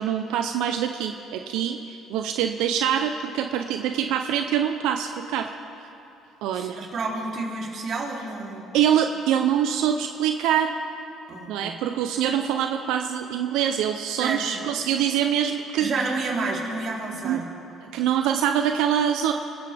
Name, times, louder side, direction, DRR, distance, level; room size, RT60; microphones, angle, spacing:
voice 1, 0.0-5.5 6.4-6.8 8.7-10.8 11.5-15.9 17.2-17.4 17.9-19.3, right 9 dB, 80° right, 6 dB, 0.6 m, -24 dB
voice 2, 6.5-8.7 11.3-11.7 14.1-14.4 15.8-17.4, right 3 dB, 55° right, -2 dB, 3.2 m, -30 dB
27.0 x 13.5 x 3.5 m, 2.8 s
supercardioid pair, 85°, 0 cm